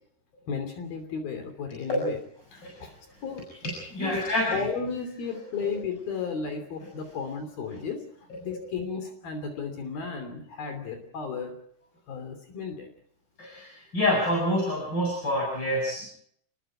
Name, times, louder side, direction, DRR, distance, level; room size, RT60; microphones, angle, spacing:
voice 1, 0.5-2.2 2.5-2.9 3.2-3.4 4.0-4.2 4.5-11.6 12.1-12.9, left 5 dB, 65° left, 7 dB, 4.7 m, -34 dB
voice 2, 2.6-3.2 3.6-4.7 5.3-5.4 8.3-8.4 13.4-16.1, left 1 dB, 25° left, -2 dB, 7.5 m, -28 dB
29.0 x 20.5 x 4.9 m, 0.66 s
omnidirectional pair, 4.8 m